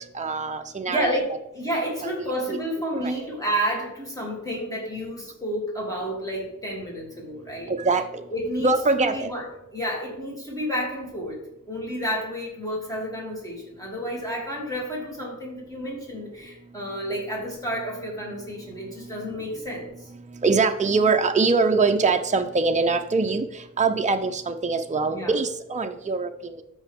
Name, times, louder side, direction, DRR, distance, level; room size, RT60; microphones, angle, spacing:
voice 1, 0.0-1.1 2.0-2.6 2.9-3.2 7.7-8.2 8.6-9.3 20.3-26.6, right 4 dB, 25° right, 5 dB, 0.6 m, -23 dB
voice 2, 0.9-7.7 8.3-8.7 9.0-9.5 9.7-11.4 11.7-20.1 25.1-25.3, equal, 10° left, -3 dB, 2.9 m, -30 dB
13.0 x 5.6 x 3.6 m, 0.85 s
wide cardioid pair, 125°, 31 cm